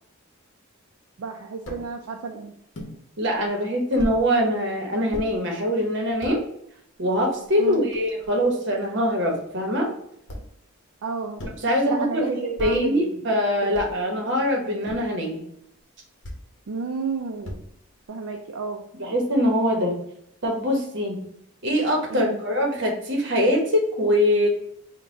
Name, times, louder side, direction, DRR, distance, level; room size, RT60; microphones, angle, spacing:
voice 1, 1.2-2.5 7.6-7.9 11.0-11.4 11.9-13.3 13.6-13.8 16.7-17.6 18.1-18.8 22.1-22.4, right 4 dB, 70° right, 1 dB, 0.4 m, -32 dB
sound 1, 1.7-1.9 2.7-3.0 4.0-4.2 5.1-5.3 6.0-6.4 7.1-7.2 7.4-8.5 10.3-10.6 11.4-11.7 12.6-12.9 13.7-14.1 14.9-15.2 16.2-16.5 17.4-17.9, equal, 55° left, 0.8 m, -36 dB
voice 2, 3.2-6.4 7.0-9.9 11.6-15.4 19.0-20.0 20.4-21.2 21.6-24.5, equal, 55° right, 1 dB, 0.9 m, -23 dB
3.8 x 2.2 x 3.8 m, 0.72 s
head